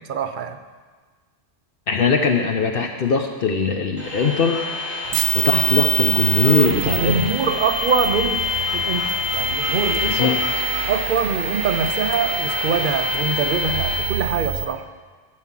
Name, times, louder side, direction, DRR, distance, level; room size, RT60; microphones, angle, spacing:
voice 1, 0.1-0.6 5.1-5.2 6.8-8.4 8.7-10.4 10.9-14.9, right 5 dB, 55° right, 8 dB, 0.7 m, -24 dB
voice 2, 1.9-5.0 5.3-7.3 10.0-10.4, left 5 dB, 55° left, 4 dB, 0.9 m, -21 dB
sound 1, 4.0-14.0, left 4 dB, 15° left, 3.9 m, -27 dB
sound 2, 5.1-14.7, right 9 dB, 85° right, 1.0 m, -26 dB
13.0 x 4.8 x 7.4 m, 1.5 s
omnidirectional pair, 1.2 m